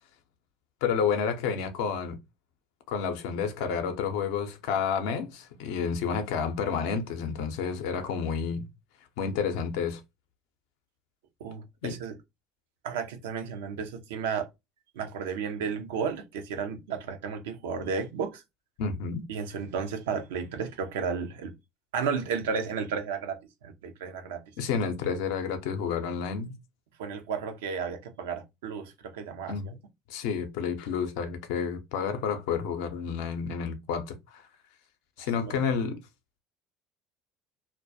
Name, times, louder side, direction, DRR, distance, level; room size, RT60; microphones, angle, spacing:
voice 1, 0.8-2.2 2.9-8.7 9.2-10.0 11.8-12.0 18.8-19.3 24.6-26.6 29.5-29.8 30.1-34.4 35.2-36.0, left 6 dB, 70° left, 0.5 m, -30 dB
voice 2, 11.4-12.2 12.8-14.5 15.0-18.4 19.3-21.6 21.9-24.4 27.0-29.6 35.2-35.5, right 6 dB, 80° right, 0.5 m, -33 dB
2.2 x 2.2 x 2.6 m
hypercardioid pair, 70°, 0 cm